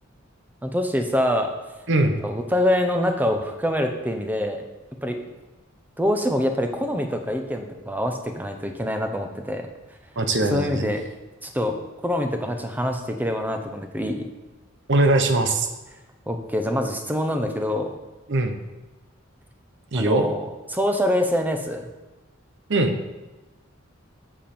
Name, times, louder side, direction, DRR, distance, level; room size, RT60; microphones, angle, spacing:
voice 1, 0.6-1.5 2.2-4.6 5.0-5.2 6.0-9.7 10.5-11.0 11.4-11.8 12.0-14.3 16.3-18.0 19.9-21.9, left 1 dB, 10° right, 5 dB, 0.8 m, -25 dB
voice 2, 1.9-2.2 10.2-10.9 14.9-15.7 18.3-18.6 19.9-20.3 22.7-23.0, right 2 dB, 60° right, 7 dB, 0.9 m, -21 dB
7.9 x 7.3 x 4.4 m, 1.1 s
head